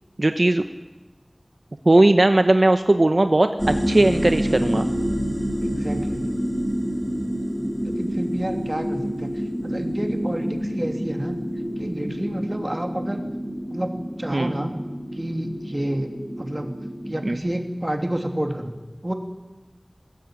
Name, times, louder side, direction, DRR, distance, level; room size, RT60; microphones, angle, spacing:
voice 1, 0.2-0.7 1.9-3.5 3.9-4.9 14.3-14.5 17.2-17.4, right 2 dB, 70° right, 8 dB, 0.9 m, -17 dB
sound 1, 3.6-17.3, equal, ahead, 4.6 m, -28 dB
voice 2, 5.6-6.3 7.8-11.4 11.8-13.2 13.7-14.7 15.1-16.1 16.4-16.7 17.1-18.8 19.0-19.1, right 1 dB, 30° right, 5 dB, 2.9 m, -29 dB
21.5 x 16.0 x 9.0 m, 1.2 s
wide cardioid pair, 40°, 0 cm